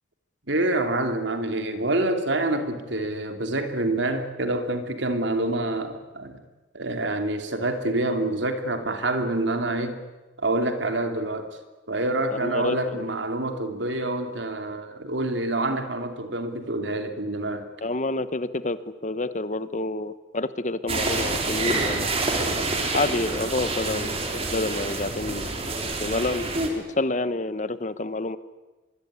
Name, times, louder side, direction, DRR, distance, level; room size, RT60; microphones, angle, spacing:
voice 1, 0.5-6.4 6.7-10.0 10.4-11.6 11.9-17.7, right 2 dB, 70° right, 7 dB, 2.8 m, -27 dB
voice 2, 12.3-13.1 17.8-22.3 22.9-25.5 26.0-26.5 27.0-28.4, left 2 dB, 40° left, 14 dB, 1.1 m, -28 dB
sound 1, 20.9-26.7, right 3 dB, 30° right, 3.8 m, -27 dB
23.5 x 23.0 x 9.7 m, 1.2 s
head